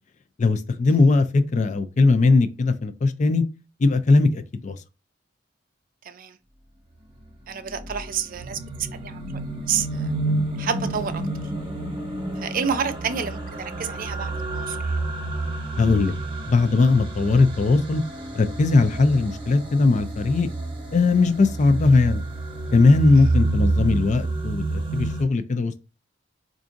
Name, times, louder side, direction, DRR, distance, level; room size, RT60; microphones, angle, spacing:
voice 1, 0.4-3.4 3.8-4.8 15.8-16.1 16.5-18.0 18.3-20.5 20.9-22.2 22.7-25.8, left 3 dB, 40° left, 0.4 m, -19 dB
voice 2, 6.0-6.4 7.5-9.3 9.7-10.1 10.6-11.2 12.4-14.9 23.2-23.3, right 7 dB, 45° right, 0.4 m, -29 dB
sound 1, 7.2-25.2, right 2 dB, 25° right, 1.0 m, -29 dB
4.7 x 2.5 x 2.5 m
head